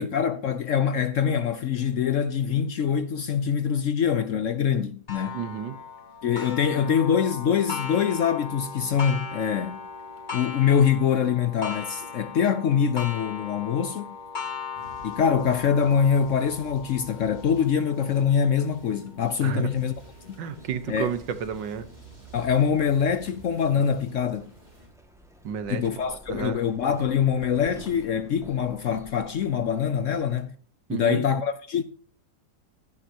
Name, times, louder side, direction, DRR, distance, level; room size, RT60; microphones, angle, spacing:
voice 1, 0.0-5.4 6.2-9.8 10.3-14.2 15.0-19.9 20.9-21.1 22.3-24.5 25.7-30.5 30.9-31.8, left 7 dB, 60° left, 0.8 m, -24 dB
Clock, 5.1-20.4 21.0-21.1 21.6-21.7 22.7-22.8, left 5 dB, 30° left, 1.1 m, -38 dB
voice 2, 5.3-5.8 19.4-19.6 20.4-21.9 25.4-25.8 26.1-26.6 30.9-31.2, right 8 dB, 85° right, 1.8 m, -31 dB
Futuristic Battlefield, 14.7-24.9, right 2 dB, 25° right, 3.9 m, -49 dB
sound 1, 20.5-30.4, equal, ahead, 1.8 m, -51 dB
15.5 x 11.0 x 2.9 m
omnidirectional pair, 1.9 m